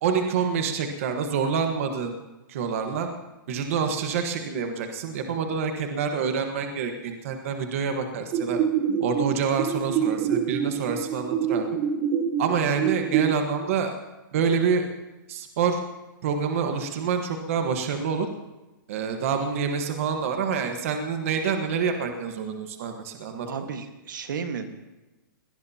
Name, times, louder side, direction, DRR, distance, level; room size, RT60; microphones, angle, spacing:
voice 1, 0.0-2.2 2.5-3.1 3.5-8.6 9.0-11.6 12.4-14.0 14.3-14.9 15.3-15.8 16.2-18.3 18.9-23.5, right 6 dB, 40° right, 5 dB, 1.3 m, -27 dB
sound 1, 8.3-13.3, right 8 dB, 25° right, 1.0 m, -26 dB
voice 2, 23.4-24.7, right 6 dB, 65° right, 7 dB, 1.6 m, -33 dB
23.0 x 18.0 x 2.9 m, 1.1 s
hypercardioid pair, 175°, 11 cm